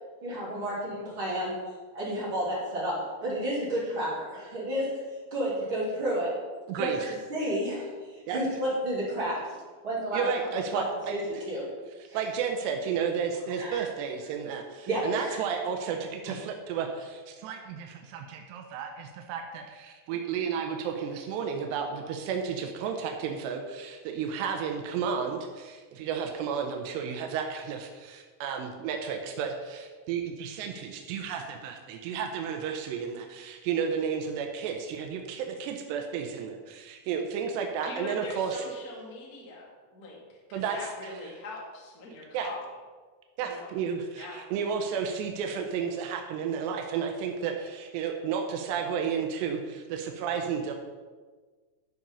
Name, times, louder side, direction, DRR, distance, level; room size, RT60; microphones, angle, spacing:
voice 1, 0.2-1.5 1.9-4.9 5.3-6.3 6.7-9.4 9.8-10.8 11.1-11.6 12.1-12.2 13.6-13.8 14.9-15.4, right 1 dB, 30° right, -7 dB, 2.8 m, -31 dB
voice 2, 6.7-7.1 8.3-8.4 10.1-11.1 12.1-38.6 40.5-40.8 42.3-42.5 43.4-50.7, right 6 dB, 80° right, 3 dB, 2.5 m, -32 dB
voice 3, 37.8-42.7 43.4-43.8 44.1-44.4, left 2 dB, 50° left, -4 dB, 1.1 m, -42 dB
13.0 x 5.2 x 5.4 m, 1.4 s
omnidirectional pair, 5.8 m